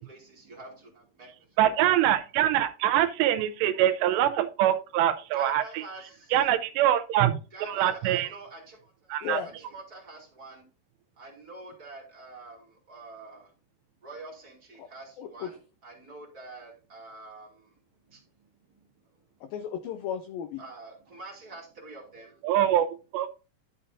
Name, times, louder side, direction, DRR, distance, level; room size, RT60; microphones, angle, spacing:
voice 1, 0.0-1.6 5.3-6.4 7.5-10.6 11.2-13.5 14.0-17.8 18.1-18.2 18.7-19.2 20.6-22.4, right 2 dB, 30° right, -2 dB, 2.0 m, -46 dB
voice 2, 1.6-5.6 6.3-8.3 9.1-9.4 22.4-23.3, right 12 dB, 80° right, 10 dB, 2.8 m, -24 dB
voice 3, 9.2-9.5 14.8-14.9 15.2-15.5 19.4-20.6, left 7 dB, 85° left, 8 dB, 2.0 m, -35 dB
11.5 x 6.7 x 2.6 m, 0.32 s
omnidirectional pair, 5.0 m